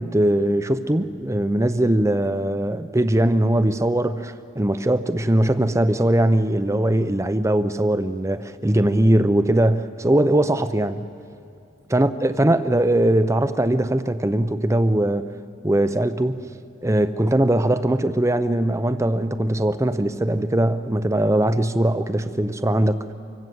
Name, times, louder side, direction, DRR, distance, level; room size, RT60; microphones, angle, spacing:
voice 1, 0.0-11.0 11.9-15.3 15.6-16.4 16.8-23.1, right 1 dB, 15° right, 11 dB, 0.6 m, -20 dB
25.5 x 24.0 x 7.8 m, 2.6 s
head